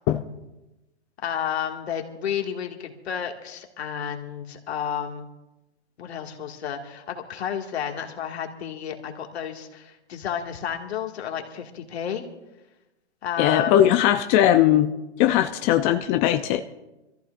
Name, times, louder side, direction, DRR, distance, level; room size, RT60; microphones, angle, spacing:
voice 1, 1.2-5.3 6.0-12.3 13.2-13.8, left 8 dB, 65° left, 3 dB, 2.0 m, -31 dB
voice 2, 13.4-14.9 15.2-16.6, left 12 dB, 20° left, 7 dB, 0.4 m, -19 dB
25.5 x 14.0 x 2.5 m, 1.0 s
hypercardioid pair, 125°, 34 cm